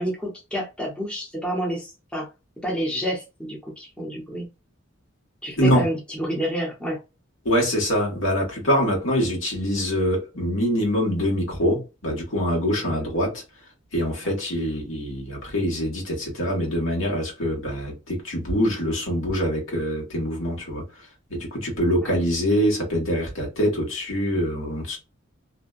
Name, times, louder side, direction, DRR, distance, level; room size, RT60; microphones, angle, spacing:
voice 1, 0.0-2.3 2.6-4.5 5.4-7.0 12.8-13.1 14.2-14.3 22.0-22.1, equal, 5° left, 0.8 m, -29 dB
voice 2, 7.4-13.4 13.9-20.8 21.3-25.0, equal, 75° left, 1.3 m, -24 dB
2.6 x 2.2 x 2.3 m
head